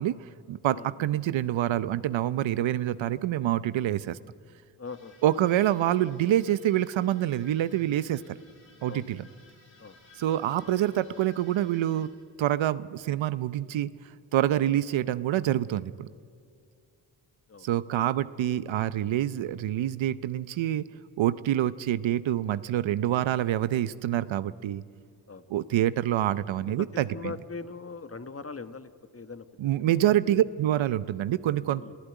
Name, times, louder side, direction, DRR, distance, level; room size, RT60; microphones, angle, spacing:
voice 1, 0.0-4.2 5.2-8.4 8.8-9.3 10.2-12.1 12.4-13.9 14.3-16.1 17.6-20.8 21.2-24.8 25.5-27.3 29.6-31.8, right 12 dB, 80° right, 16 dB, 0.8 m, -26 dB
voice 2, 0.7-1.1 4.8-5.5 8.9-9.1 9.8-10.0 17.5-17.7 25.3-25.4 26.6-29.4 29.8-30.0 31.8-32.0, left 4 dB, 30° left, 11 dB, 1.4 m, -41 dB
sound 1, 4.8-12.1, left 2 dB, 80° left, 7.9 m, -58 dB
27.0 x 15.5 x 9.2 m, 2.3 s
cardioid pair, 50°, 46 cm